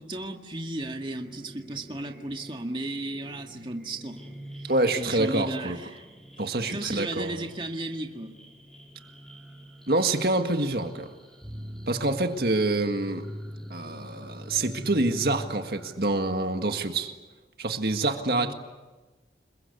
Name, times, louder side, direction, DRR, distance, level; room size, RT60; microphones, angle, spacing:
voice 1, 0.0-4.4 4.6-4.7 5.0-6.0 6.7-8.3 18.3-18.5, right 2 dB, 30° right, 3 dB, 1.9 m, -34 dB
sound 1, 0.8-15.9, equal, 5° left, 4.1 m, -44 dB
voice 2, 4.6-5.8 6.4-7.5 9.9-11.1 11.9-13.3 13.7-17.1 17.6-18.5, right 2 dB, 60° right, 6 dB, 1.8 m, -26 dB
29.0 x 22.0 x 8.3 m, 1.2 s
head